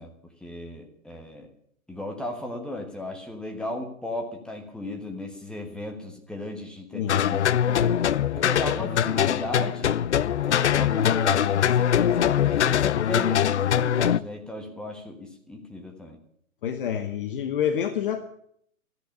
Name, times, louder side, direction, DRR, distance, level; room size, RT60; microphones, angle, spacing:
voice 1, 0.0-1.5 1.9-8.0 8.3-9.9 10.4-16.2, left 1 dB, ahead, 2 dB, 1.3 m, -36 dB
voice 2, 6.9-7.2 16.6-18.3, left 9 dB, 40° left, 8 dB, 1.2 m, -28 dB
sound 1, 7.1-14.2, left 9 dB, 55° left, 0.5 m, -22 dB
13.5 x 10.0 x 8.3 m, 0.66 s
figure-of-eight pair, 120°, 41 cm